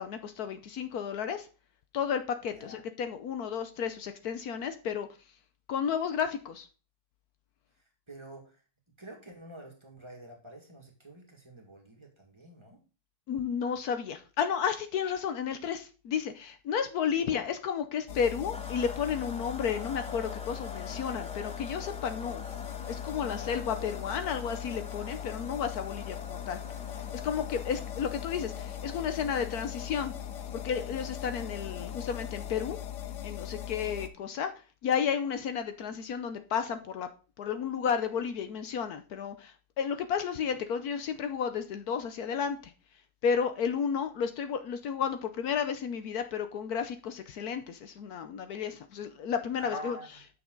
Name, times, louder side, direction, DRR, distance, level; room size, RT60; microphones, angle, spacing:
voice 1, 0.0-1.5 1.9-5.1 5.7-6.7 13.3-22.4 22.8-26.6 27.2-30.1 30.5-32.8 33.2-34.5 34.8-37.1 37.4-42.7 43.2-50.0, left 7 dB, 70° left, 9 dB, 1.2 m, -32 dB
voice 2, 7.7-8.6 9.0-12.8 17.2-17.4 23.2-23.8 49.6-50.1, right 1 dB, 15° right, 0 dB, 1.9 m, -47 dB
sound 1, 18.1-34.1, left 11 dB, 85° left, 1.4 m, -40 dB
sound 2, 18.5-33.3, left 2 dB, 10° left, 0.4 m, -47 dB
8.3 x 6.2 x 3.8 m, 0.35 s
omnidirectional pair, 1.7 m